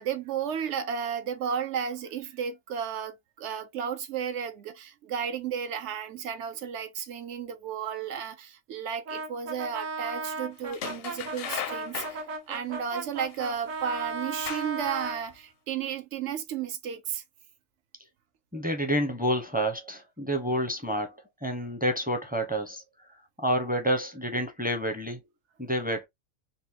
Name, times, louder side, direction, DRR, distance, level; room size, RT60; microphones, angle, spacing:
voice 1, 0.0-12.2 12.5-17.2, right 8 dB, 70° right, 0.9 m, -33 dB
Brass instrument, 9.1-15.2, right 3 dB, 90° right, 1.5 m, -36 dB
sound 1, 10.7-12.2 13.3-13.5 14.2-14.9 15.3-15.4, left 9 dB, 65° left, 0.6 m, -36 dB
voice 2, 18.5-21.2 21.4-22.8 23.1-25.2 25.6-26.1, equal, 10° right, 0.5 m, -29 dB
4.0 x 2.3 x 2.6 m
omnidirectional pair, 1.3 m